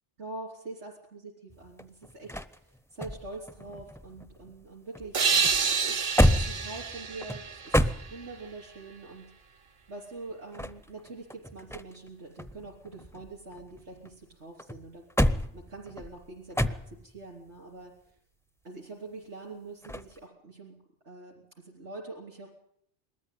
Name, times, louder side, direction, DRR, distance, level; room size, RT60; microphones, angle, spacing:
voice 1, 0.2-9.6 9.9-17.9 18.6-20.7 21.0-22.5, right 3 dB, 80° right, -2 dB, 3.9 m, -45 dB
sound 1, 1.5-4.7 4.9-8.6 10.3-12.1 12.4-14.1 14.6-17.2 19.8-20.2, equal, 5° left, 0.4 m, -30 dB
sound 2, 5.1-8.6, right 5 dB, 60° right, 1.2 m, -29 dB
20.5 x 13.5 x 9.4 m, 0.71 s
omnidirectional pair, 1.2 m